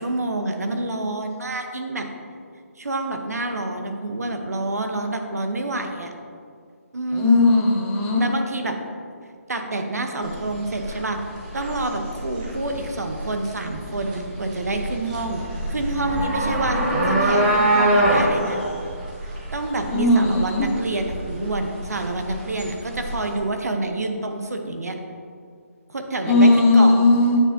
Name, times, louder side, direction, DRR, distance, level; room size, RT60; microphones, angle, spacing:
voice 1, 0.0-2.1 2.8-6.1 6.9-7.5 8.2-8.8 9.5-11.2 11.5-15.4 15.7-18.6 19.2-24.9 25.9-27.1, right 2 dB, 90° right, 5 dB, 0.8 m, -28 dB
voice 2, 7.1-8.2 19.9-20.7 26.3-27.4, left 2 dB, 15° left, -1 dB, 0.5 m, -17 dB
sound 1, 10.2-23.4, right 1 dB, 30° right, 1.2 m, -25 dB
8.8 x 4.3 x 2.6 m, 2.2 s
hypercardioid pair, 160°, 8 cm